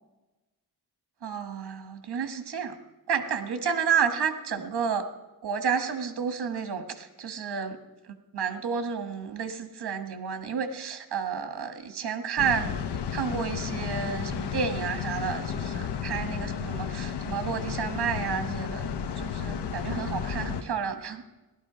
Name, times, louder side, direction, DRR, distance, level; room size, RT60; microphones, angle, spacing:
voice 1, 1.2-2.7 3.1-5.0 5.4-7.8 8.3-12.7 13.1-18.8 19.2-21.2, right 6 dB, 70° right, 8 dB, 1.6 m, -31 dB
sound 1, 12.4-20.6, left 7 dB, 80° left, 0.9 m, -33 dB
17.0 x 12.5 x 5.0 m, 1.1 s
wide cardioid pair, 115°, 40 cm